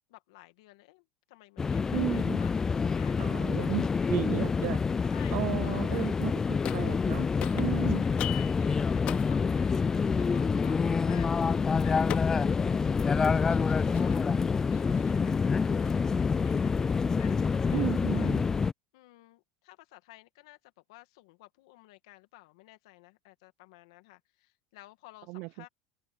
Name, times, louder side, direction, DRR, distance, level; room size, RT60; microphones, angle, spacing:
voice 1, 0.1-3.7 5.1-5.4 5.6-6.2 8.0-14.3 14.7-18.4 18.9-25.7, left 19 dB, 80° left, 1.9 m, -54 dB
sound 1, 1.6-18.7, left 5 dB, 20° left, 0.3 m, -27 dB
voice 2, 1.9-2.4 3.2-7.3 7.5-8.1 17.7-18.4 25.3-25.7, right 22 dB, 65° right, 0.6 m, -34 dB
sound 2, 6.6-7.1 7.4-14.4, left 13 dB, 50° left, 2.5 m, -43 dB
open air
supercardioid pair, 105°, 3 cm